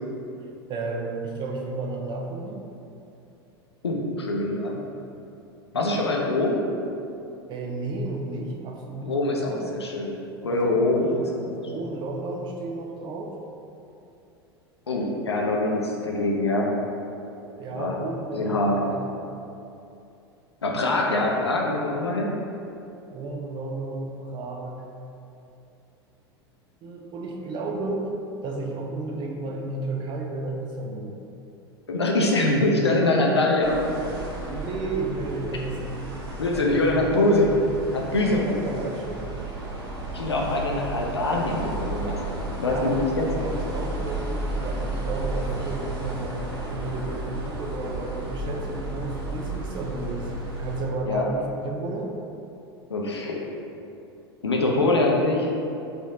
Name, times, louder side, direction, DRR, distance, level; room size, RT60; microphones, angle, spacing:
voice 1, 0.4-2.7 5.7-6.0 7.5-9.6 10.5-11.2 11.6-13.4 17.5-19.1 23.1-24.8 26.8-28.1 28.4-31.2 34.5-36.2 36.5-37.6 38.1-39.3 42.6-43.1 43.4-46.4 46.7-52.1, right 2 dB, 35° right, 1 dB, 0.6 m, -33 dB
voice 2, 3.8-4.8 5.7-6.6 9.0-10.2 10.4-11.1 11.4-11.7 14.9-16.7 17.7-17.9 18.3-18.8 20.6-22.3 31.9-34.1 36.4-37.5 37.9-38.5 40.1-42.2 42.6-43.3 51.1-51.2 52.9-53.5 54.4-55.5, left 2 dB, 80° left, -1 dB, 0.5 m, -24 dB
sound 1, 33.6-50.9, right 1 dB, 65° right, 0.9 m, -33 dB
4.4 x 2.7 x 3.6 m, 2.7 s
figure-of-eight pair, 80°, 14 cm